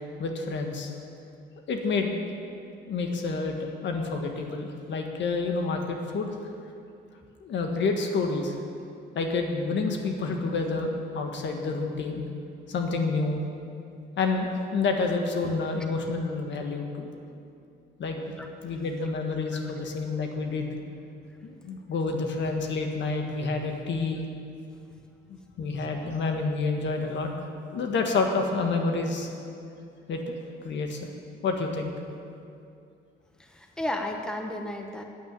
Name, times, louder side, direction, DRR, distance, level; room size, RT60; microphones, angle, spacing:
voice 1, 0.2-0.9 1.7-2.2 2.9-6.3 7.4-8.5 9.1-12.2 12.7-13.4 14.2-17.1 18.0-18.2 18.6-20.8 21.4-24.2 25.3-27.3 27.7-29.5 30.1-30.4 30.6-31.0 31.4-31.9, left 3 dB, 65° left, 3 dB, 1.6 m, -29 dB
voice 2, 33.4-35.0, left 1 dB, 5° left, 3 dB, 1.1 m, -33 dB
9.2 x 8.6 x 8.9 m, 2.5 s
cardioid pair, 90°, 20 cm